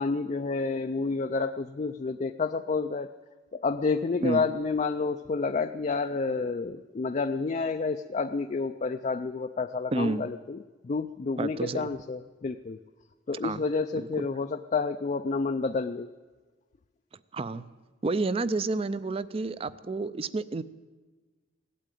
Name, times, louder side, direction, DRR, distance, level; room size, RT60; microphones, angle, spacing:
voice 1, 0.0-3.1 3.5-10.6 10.8-12.8 13.3-16.1, left 4 dB, 40° left, 8 dB, 0.4 m, -29 dB
voice 2, 9.9-10.3 11.4-11.9 13.4-13.6 13.9-14.3 17.3-17.7 18.0-20.6, right 3 dB, 30° right, 16 dB, 0.4 m, -30 dB
17.0 x 8.5 x 9.1 m, 1.3 s
head